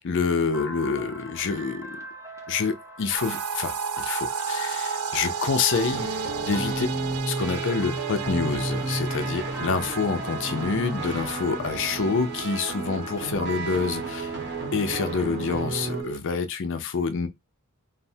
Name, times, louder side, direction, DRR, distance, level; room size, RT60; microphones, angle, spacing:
voice 1, 0.0-2.0 2.5-6.1 6.5-6.9 7.3-14.3 14.7-17.3, left 5 dB, 55° left, 0.5 m, -27 dB
sound 1, 0.5-14.2, right 2 dB, 15° right, 0.6 m, -41 dB
sound 2, 3.2-16.2, right 8 dB, 65° right, 0.3 m, -34 dB
sound 3, 5.9-16.0, right 1 dB, 50° right, 0.9 m, -33 dB
3.2 x 2.0 x 2.7 m
head